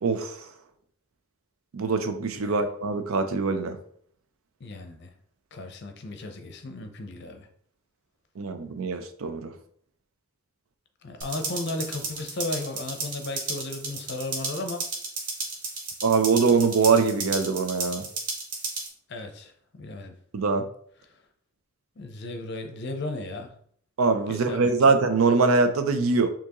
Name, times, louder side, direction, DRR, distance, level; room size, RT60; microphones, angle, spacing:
voice 1, 0.0-0.5 1.7-3.8 8.4-9.5 16.0-18.0 20.3-20.6 24.0-26.3, right 4 dB, 80° right, 9 dB, 0.5 m, -23 dB
voice 2, 4.6-5.1 5.5-7.5 11.0-14.8 19.1-20.1 22.0-23.5 24.3-24.7, left 2 dB, 55° left, 5 dB, 0.6 m, -35 dB
sound 1, 11.2-18.9, right 3 dB, 40° right, 0.9 m, -34 dB
4.4 x 2.9 x 2.9 m, 0.62 s
head